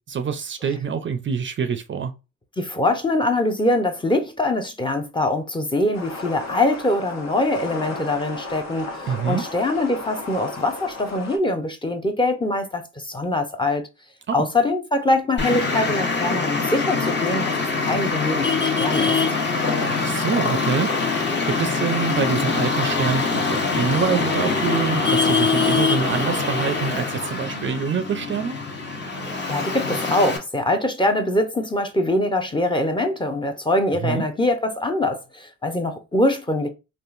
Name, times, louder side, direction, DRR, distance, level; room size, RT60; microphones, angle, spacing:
voice 1, 0.1-2.1 9.1-9.4 14.3-14.4 19.8-28.6 34.0-34.2, right 6 dB, 40° right, 0.5 m, -26 dB
voice 2, 2.6-13.8 14.3-19.2 29.2-36.7, left 1 dB, 15° left, 0.7 m, -23 dB
sound 1, 5.9-11.4, left 3 dB, 60° left, 1.1 m, -34 dB
Traffic noise roadway noise, 15.4-30.4, left 4 dB, 35° left, 1.2 m, -23 dB
3.6 x 2.5 x 2.4 m
cardioid pair, 90°, 30 cm